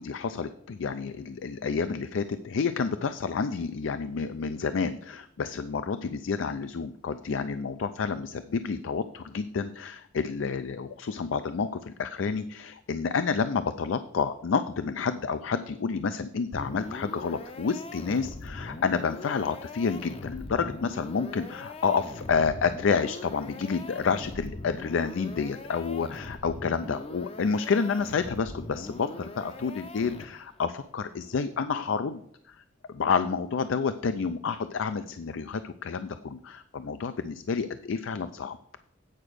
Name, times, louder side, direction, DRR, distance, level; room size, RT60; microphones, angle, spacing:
voice 1, 0.0-32.2 32.5-32.6 32.9-38.6, left 5 dB, 85° left, 11 dB, 0.4 m, -29 dB
sound 1, 16.5-30.6, left 2 dB, 30° left, 0.5 m, -41 dB
8.9 x 4.9 x 6.3 m, 0.70 s
head